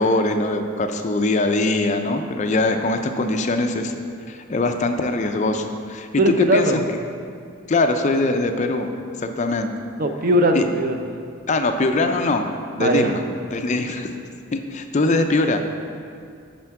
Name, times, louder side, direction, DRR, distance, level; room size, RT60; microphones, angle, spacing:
voice 1, 0.0-3.9 4.3-6.1 6.4-6.7 7.7-8.9 9.2-9.7 10.5-10.6 11.5-12.5 12.7-13.1 13.5-14.2 14.5-15.6, left 2 dB, 35° left, 6 dB, 0.4 m, -22 dB
voice 2, 6.2-6.8 10.0-11.0 12.8-13.2, right 1 dB, 40° right, 6 dB, 0.5 m, -19 dB
10.0 x 4.3 x 4.7 m, 2.4 s
head